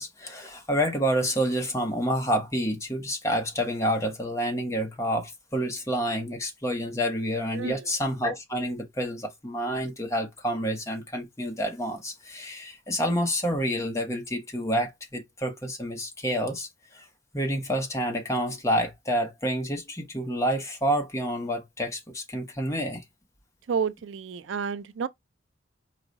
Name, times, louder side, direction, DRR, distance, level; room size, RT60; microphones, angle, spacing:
voice 1, 0.0-17.1 17.3-23.0, equal, 15° left, 1.0 m, -28 dB
voice 2, 7.5-7.9 23.7-25.1, right 6 dB, 85° right, 0.4 m, -30 dB
4.8 x 2.3 x 4.0 m
head